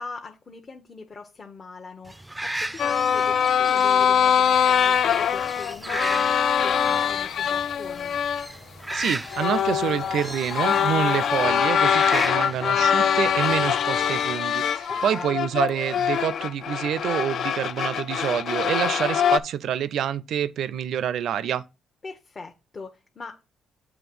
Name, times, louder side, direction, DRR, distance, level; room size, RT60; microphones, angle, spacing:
voice 1, 0.0-8.2 14.9-15.4 22.0-23.4, left 4 dB, 40° left, 0.8 m, -41 dB
sound 1, 2.1-14.3, right 1 dB, 10° right, 0.4 m, -37 dB
sound 2, 2.8-8.5 8.9-9.0 9.3-19.4, left 8 dB, 65° left, 0.4 m, -23 dB
sound 3, 4.4-11.5, left 5 dB, 85° left, 1.1 m, -50 dB
voice 2, 8.9-21.6, right 9 dB, 70° right, 0.4 m, -27 dB
7.1 x 3.2 x 6.1 m
cardioid pair, 90°, 0 cm